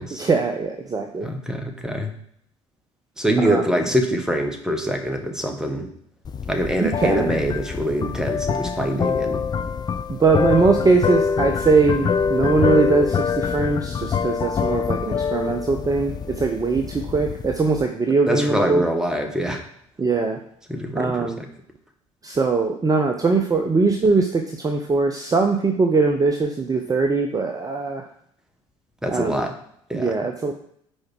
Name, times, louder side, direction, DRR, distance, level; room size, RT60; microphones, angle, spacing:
voice 1, 0.2-1.3 3.4-3.7 6.8-7.5 10.1-18.8 20.0-20.4 21.0-21.4 22.2-28.1 29.1-29.5 29.9-30.5, right 4 dB, 20° right, 4 dB, 0.8 m, -21 dB
voice 2, 1.2-2.1 3.2-5.9 6.5-9.4 18.3-19.6 20.7-21.4 29.0-29.5 29.9-30.1, equal, 5° right, 4 dB, 1.4 m, -24 dB
sound 1, 6.2-17.8, left 6 dB, 25° left, 0.5 m, -25 dB
6.4 x 4.8 x 4.7 m, 0.70 s
figure-of-eight pair, 60°, 16 cm